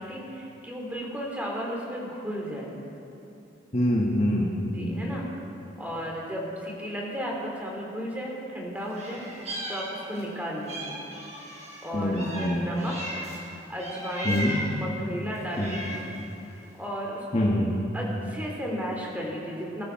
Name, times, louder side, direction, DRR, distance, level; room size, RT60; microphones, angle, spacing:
voice 1, 0.0-2.7 4.7-5.3 5.8-9.2 9.7-11.0 11.8-13.3 13.7-14.4 14.7-16.0 16.5-17.5 17.9-19.8, equal, 10° right, -2 dB, 3.1 m, -34 dB
voice 2, 3.7-5.1 11.9-12.6 14.2-14.6 15.6-15.8 17.3-17.8, left 1 dB, 35° left, -2 dB, 1.4 m, -25 dB
Meow, 8.9-10.3 10.7-13.4 13.8-14.8 15.3-16.2, right 1 dB, 35° right, 4.8 m, -36 dB
21.0 x 14.5 x 4.7 m, 2.8 s
head